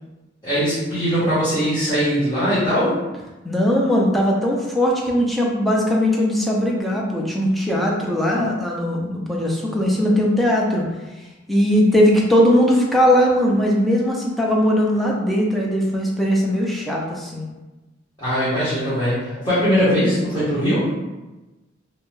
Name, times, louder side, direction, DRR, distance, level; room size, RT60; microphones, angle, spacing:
voice 1, 0.4-2.9 18.2-20.8, equal, 25° left, -13 dB, 0.9 m, -20 dB
voice 2, 3.4-10.8 11.5-17.5, equal, ahead, -3 dB, 0.4 m, -19 dB
2.7 x 2.1 x 3.0 m, 1.1 s
head